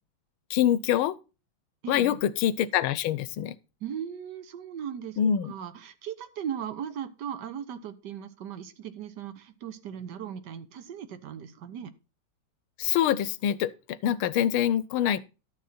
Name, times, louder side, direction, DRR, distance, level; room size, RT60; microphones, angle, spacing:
voice 1, 0.5-1.2 1.9-3.5 5.2-5.5 12.8-15.2, left 10 dB, 90° left, 1.5 m, -25 dB
voice 2, 1.8-2.2 3.8-5.2 5.4-11.9, right 8 dB, 60° right, 1.4 m, -38 dB
12.0 x 6.6 x 4.2 m
omnidirectional pair, 2.3 m